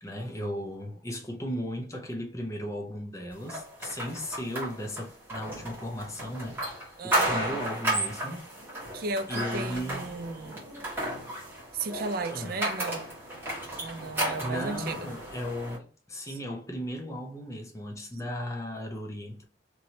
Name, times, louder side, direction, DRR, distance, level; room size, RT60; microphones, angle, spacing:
voice 1, 0.0-6.7 7.0-8.4 9.3-10.1 12.3-12.6 14.2-19.4, equal, 15° left, 0.6 m, -36 dB
sound 1, 3.5-15.8, right 1 dB, 10° right, 1.3 m, -33 dB
voice 2, 7.0-7.6 8.9-10.6 11.7-13.1 13.8-15.1, right 3 dB, 50° right, 0.4 m, -35 dB
3.0 x 2.8 x 2.8 m
head